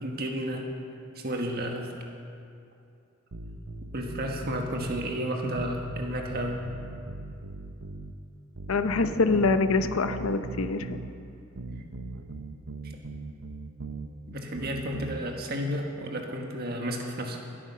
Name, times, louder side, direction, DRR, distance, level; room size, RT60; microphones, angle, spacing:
voice 1, 0.0-0.7 1.1-1.9 3.9-6.6 11.7-11.9 14.3-17.4, equal, 45° right, 2 dB, 1.6 m, -32 dB
sound 1, 3.3-5.1 5.6-8.2 8.6-11.1 11.6-14.1 14.6-15.2, right 3 dB, 85° right, 0.8 m, -39 dB
voice 2, 8.7-11.0, left 3 dB, 80° left, 9 dB, 0.7 m, -25 dB
19.5 x 8.8 x 5.6 m, 2.5 s
head